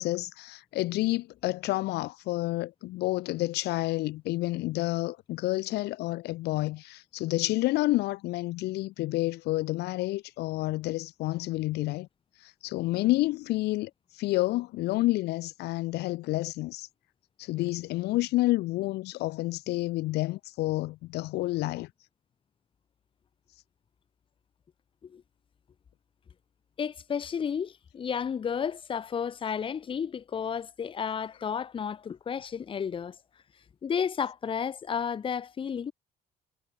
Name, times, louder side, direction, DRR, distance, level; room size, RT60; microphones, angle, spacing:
voice 1, 0.0-12.1 12.4-16.9 17.4-21.9, left 18 dB, 75° left, 0.5 m, -29 dB
voice 2, 26.8-33.2 33.8-35.9, left 7 dB, 30° left, 0.7 m, -32 dB
cardioid pair, 110°, 17 cm